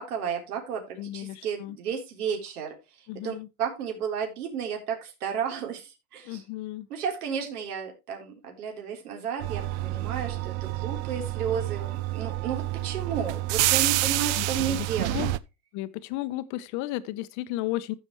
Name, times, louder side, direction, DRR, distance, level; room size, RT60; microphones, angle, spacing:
voice 1, 0.0-2.8 3.2-6.4 6.9-15.2, right 7 dB, 75° right, 3.8 m, -33 dB
voice 2, 1.0-1.8 3.1-3.5 6.2-6.9 14.4-14.9 15.1-15.3 15.7-17.9, left 16 dB, 40° left, 0.9 m, -34 dB
sound 1, 9.4-15.4, right 17 dB, 50° right, 0.6 m, -28 dB
15.0 x 6.0 x 3.1 m
supercardioid pair, 135°, 45 cm